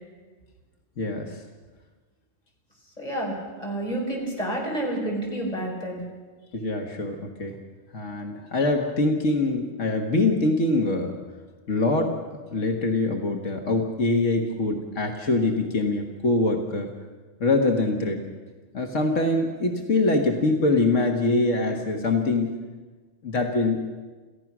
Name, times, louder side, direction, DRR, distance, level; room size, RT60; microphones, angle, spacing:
voice 1, 1.0-1.4 6.5-7.6 7.9-11.1 11.7-12.1 12.5-16.9 17.4-18.2 18.7-22.6 23.2-23.9, left 2 dB, 85° left, 2 dB, 1.8 m, -24 dB
voice 2, 3.0-6.0, right 1 dB, 35° left, -2 dB, 5.5 m, -29 dB
28.5 x 15.0 x 6.1 m, 1.4 s
omnidirectional pair, 1.3 m